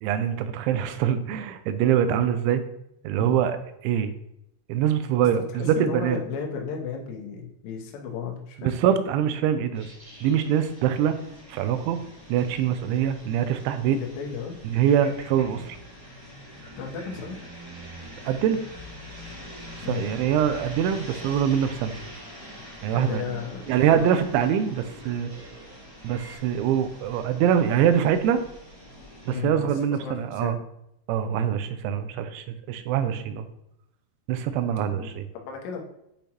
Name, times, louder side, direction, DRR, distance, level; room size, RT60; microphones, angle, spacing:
voice 1, 0.0-2.6 3.0-3.6 3.8-4.1 4.7-6.2 8.6-9.9 10.2-11.2 11.5-12.0 12.3-14.0 14.6-15.8 18.3-18.6 19.9-22.0 22.8-23.2 23.7-25.3 26.0-28.4 29.3-30.6 31.1-33.5 34.3-35.2, right 9 dB, 90° right, 10 dB, 3.0 m, -24 dB
voice 2, 5.5-8.7 13.7-14.6 16.8-17.4 19.8-20.0 22.9-23.6 23.9-24.2 29.3-30.6 31.2-31.4 34.9-35.1 35.4-35.8, left 6 dB, 75° left, -1 dB, 2.9 m, -34 dB
sound 1, 9.7-29.4, left 1 dB, 15° right, 1.2 m, -44 dB
sound 2, 22.0-26.4, right 2 dB, 45° right, 2.3 m, -49 dB
8.5 x 5.1 x 3.0 m, 0.80 s
omnidirectional pair, 5.3 m